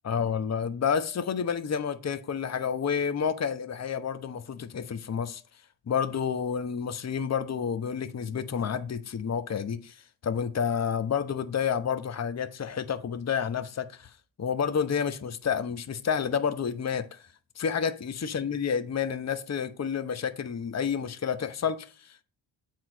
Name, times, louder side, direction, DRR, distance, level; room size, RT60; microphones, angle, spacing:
voice 1, 0.0-5.4 5.9-14.1 14.4-17.2 17.6-22.2, left 7 dB, 35° left, 0.9 m, -30 dB
7.5 x 4.6 x 6.1 m
supercardioid pair, 50°, 48 cm